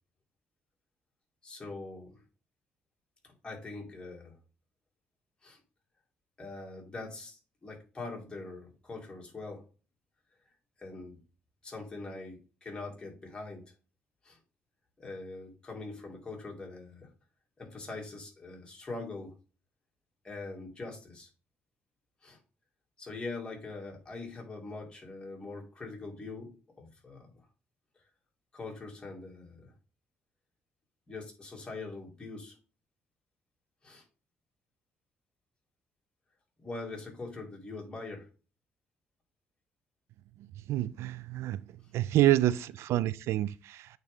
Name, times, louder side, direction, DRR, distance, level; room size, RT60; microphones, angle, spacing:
voice 1, 1.4-2.2 3.2-4.4 5.4-5.6 6.4-9.7 10.8-11.2 11.6-13.6 14.2-14.4 15.0-17.1 17.6-19.3 20.2-21.3 22.2-22.4 23.0-27.3 28.5-29.7 31.1-32.6 33.8-34.1 36.6-38.3, left 3 dB, 20° left, 2.3 m, -43 dB
voice 2, 40.7-41.6 41.9-43.9, right 14 dB, 80° right, 0.3 m, -27 dB
8.6 x 3.9 x 3.5 m
cardioid pair, 105°, 5 cm